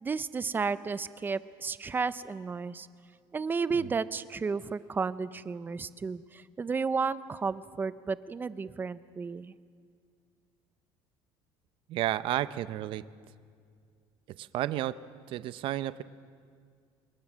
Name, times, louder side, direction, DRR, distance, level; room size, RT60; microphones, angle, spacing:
voice 1, 0.0-2.9 3.3-9.5, right 5 dB, 20° right, 16 dB, 0.6 m, -32 dB
voice 2, 11.9-13.0 14.4-15.0 15.3-16.0, right 14 dB, 55° right, 15 dB, 0.7 m, -32 dB
26.5 x 21.5 x 6.3 m, 2.1 s
cardioid pair, 145°, 11 cm